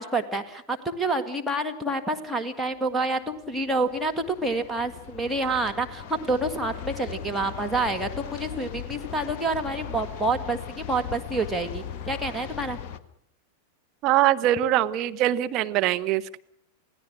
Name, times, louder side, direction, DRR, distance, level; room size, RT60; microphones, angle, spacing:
voice 1, 0.0-12.8, right 2 dB, 5° right, 2 dB, 2.2 m, -28 dB
sound 1, 2.9-13.0, left 8 dB, 40° left, 1.5 m, -39 dB
voice 2, 14.0-16.4, right 13 dB, 40° right, 7 dB, 1.1 m, -23 dB
28.5 x 17.0 x 6.4 m, 0.69 s
figure-of-eight pair, 90°, 0 cm